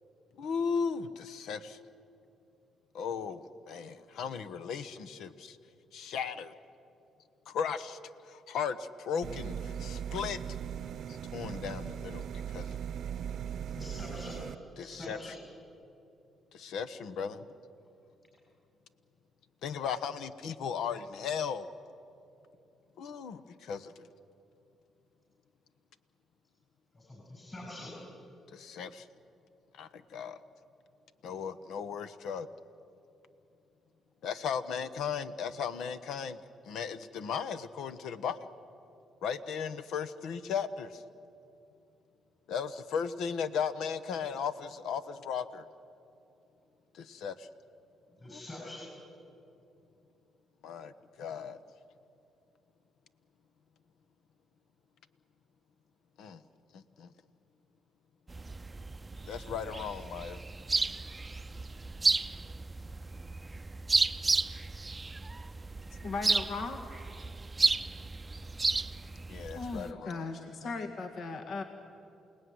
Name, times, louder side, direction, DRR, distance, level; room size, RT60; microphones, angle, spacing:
voice 1, 0.4-1.8 2.9-5.6 5.9-6.5 7.5-8.0 8.3-10.4 11.1-12.8 14.8-15.3 16.5-17.5 19.6-21.7 23.0-24.1 28.5-29.1 29.7-30.4 31.2-32.5 34.2-36.4 36.7-38.5 39.2-41.0 42.5-45.7 46.9-47.5 48.3-48.4 50.6-51.6 56.2-56.4 56.7-57.1 59.3-60.4 67.6-67.8 69.3-70.7, left 6 dB, 80° left, 13 dB, 1.1 m, -36 dB
sound 1, 9.2-14.5, right 8 dB, 65° right, 0.7 m, -39 dB
voice 2, 13.7-14.4 14.8-15.3 26.9-27.9 48.2-48.9, left 1 dB, 25° left, -3 dB, 7.3 m, -44 dB
sound 2, 58.3-69.9, right 3 dB, 20° right, 0.6 m, -33 dB
voice 3, 66.0-66.8 69.5-71.6, left 3 dB, 60° left, 5 dB, 1.8 m, -37 dB
28.5 x 19.0 x 9.7 m, 2.7 s
cardioid pair, 90°, 0 cm